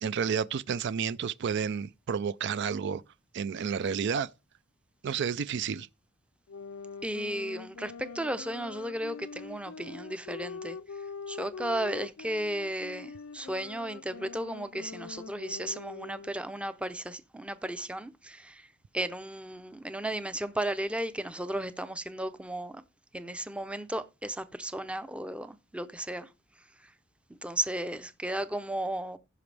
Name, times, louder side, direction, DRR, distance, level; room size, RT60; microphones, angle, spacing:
voice 1, 0.0-3.0 3.3-4.3 5.0-5.9, right 6 dB, 60° right, 0.4 m, -31 dB
sound 1, 6.5-16.5, left 5 dB, 90° left, 0.6 m, -43 dB
voice 2, 7.0-10.8 11.3-18.7 18.9-22.8 23.1-26.3 27.4-29.2, right 1 dB, 5° right, 0.6 m, -34 dB
15.5 x 6.0 x 3.3 m
head